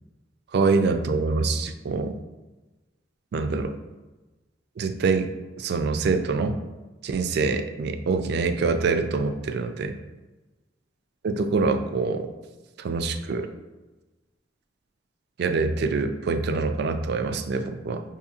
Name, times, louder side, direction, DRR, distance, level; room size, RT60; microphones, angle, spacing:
voice 1, 0.5-2.2 3.3-3.7 4.8-5.3 5.6-6.6 7.0-9.9 11.2-12.3 12.8-13.5 15.4-18.0, right 4 dB, 60° right, 7 dB, 0.3 m, -25 dB
5.8 x 2.8 x 2.4 m, 1.1 s
head